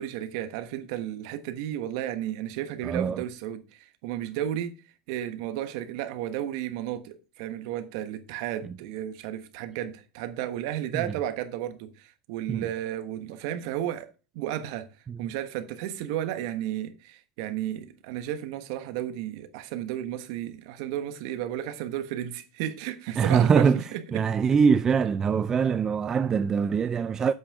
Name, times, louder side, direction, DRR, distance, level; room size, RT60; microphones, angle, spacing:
voice 1, 0.0-4.7 5.1-14.1 14.3-14.9 15.2-24.3, right 11 dB, 60° right, 1.2 m, -33 dB
voice 2, 2.8-3.2 10.9-11.1 12.5-12.7 15.1-15.2 23.2-23.8 24.1-27.3, right 6 dB, 20° right, 0.3 m, -23 dB
8.1 x 5.7 x 4.8 m
supercardioid pair, 150°, 3 cm